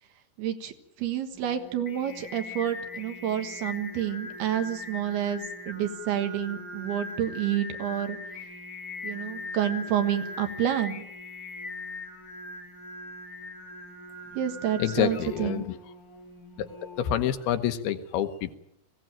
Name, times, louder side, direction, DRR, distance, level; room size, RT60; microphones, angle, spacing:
voice 1, 0.4-0.7 1.0-8.2 9.0-11.0 14.3-15.7, right 10 dB, 75° right, 7 dB, 3.5 m, -29 dB
Singing, 1.3-17.6, left 2 dB, 30° left, 1.8 m, -41 dB
voice 2, 14.8-15.8 16.6-16.7 17.0-18.6, left 10 dB, 75° left, 8 dB, 3.0 m, -27 dB
21.0 x 16.5 x 9.0 m, 0.81 s
omnidirectional pair, 4.6 m